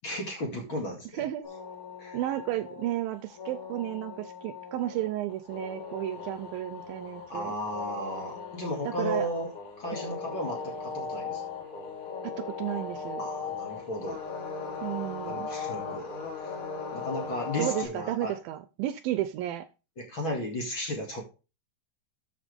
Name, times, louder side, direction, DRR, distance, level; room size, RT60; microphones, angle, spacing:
voice 1, 0.0-1.3 2.0-2.2 7.3-9.5 9.8-11.4 13.2-14.2 15.3-16.1 16.4-16.5 16.9-18.4 20.0-21.2, left 1 dB, 35° left, 1 dB, 2.5 m, -34 dB
voice 2, 1.1-1.5 2.1-7.5 8.9-9.3 10.0-10.2 12.2-13.2 14.8-15.5 17.6-19.7, right 14 dB, 80° right, 12 dB, 2.2 m, -33 dB
sound 1, 1.4-17.8, left 5 dB, 55° left, 4.4 m, -38 dB
12.5 x 7.6 x 3.4 m, 0.32 s
omnidirectional pair, 4.5 m